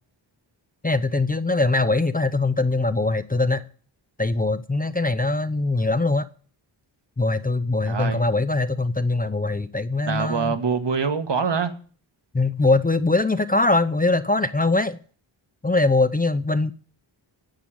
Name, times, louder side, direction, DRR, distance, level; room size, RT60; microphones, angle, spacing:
voice 1, 0.8-3.6 4.2-6.2 7.2-10.5 12.3-15.0 15.6-16.7, left 2 dB, 20° left, 0.7 m, -22 dB
voice 2, 7.8-8.3 10.1-11.7, right 5 dB, 60° right, 1.7 m, -25 dB
10.5 x 8.5 x 8.9 m
wide cardioid pair, 105°, 46 cm